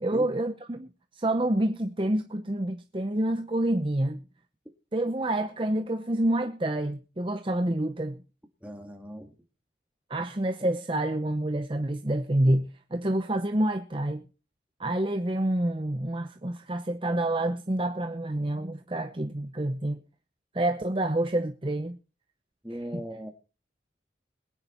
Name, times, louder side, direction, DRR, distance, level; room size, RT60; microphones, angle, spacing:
voice 1, 0.0-4.2 4.9-8.2 10.1-14.2 14.8-20.0 20.5-22.0, right 1 dB, 30° right, 0.8 m, -28 dB
voice 2, 8.6-9.3 10.2-10.3 22.6-23.3, equal, 5° right, 2.1 m, -38 dB
21.5 x 9.7 x 4.4 m
head